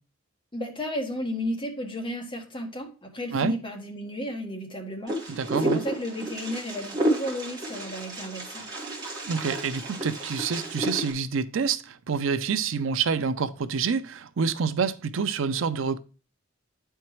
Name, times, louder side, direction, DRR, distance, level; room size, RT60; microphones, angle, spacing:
voice 1, 0.5-8.7, left 1 dB, 25° left, 1.4 m, -33 dB
Wind, 5.1-11.1, right 1 dB, 20° right, 2.0 m, -31 dB
voice 2, 5.3-5.8 9.3-16.0, right 5 dB, 70° right, 0.5 m, -27 dB
9.4 x 4.5 x 3.1 m
head